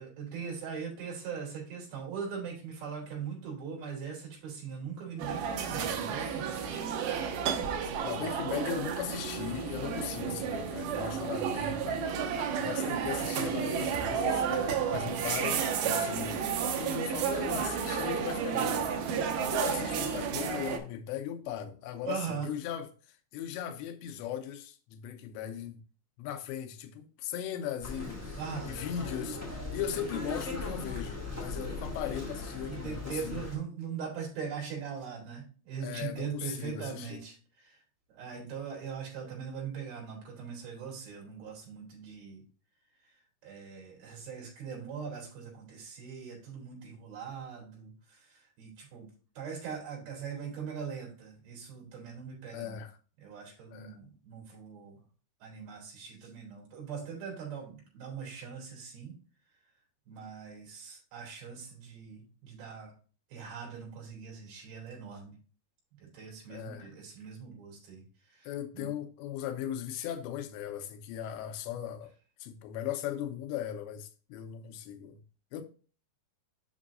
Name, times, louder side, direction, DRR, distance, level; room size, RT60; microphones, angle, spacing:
voice 1, 0.0-6.8 22.0-22.5 28.4-28.8 32.7-37.8 38.1-42.4 43.4-49.1 49.4-52.8 53.2-55.0 55.4-59.2 60.1-62.9 63.3-65.3 66.0-68.0 68.3-68.5 68.7-68.9, right 6 dB, 60° right, 4.8 m, -41 dB
sound 1, 5.2-20.8, right 7 dB, 80° right, 2.0 m, -32 dB
voice 2, 8.0-12.0 12.6-25.8 26.2-28.4 28.7-33.5 35.8-37.2 52.5-53.0 53.7-54.0 66.5-66.9 68.4-72.1 72.4-75.2 75.5-75.6, left 10 dB, 85° left, 3.0 m, -38 dB
sound 2, 27.8-33.5, left 2 dB, 5° right, 1.4 m, -39 dB
8.1 x 6.2 x 2.6 m
omnidirectional pair, 5.1 m